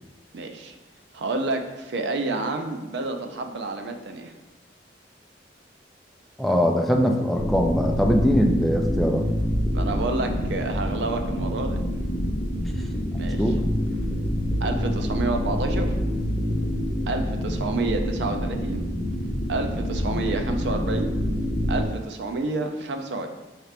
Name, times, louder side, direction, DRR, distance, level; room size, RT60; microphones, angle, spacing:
voice 1, 0.3-0.7 1.1-4.3 9.7-11.8 13.2-13.4 14.6-15.9 17.1-18.8 19.5-21.2 21.7-23.3, right 3 dB, 80° right, 5 dB, 0.4 m, -29 dB
voice 2, 6.4-9.3 13.1-13.6, equal, ahead, 1 dB, 0.3 m, -22 dB
sound 1, 7.3-21.9, equal, 20° left, 0.8 m, -26 dB
4.8 x 2.9 x 3.3 m, 1.1 s
head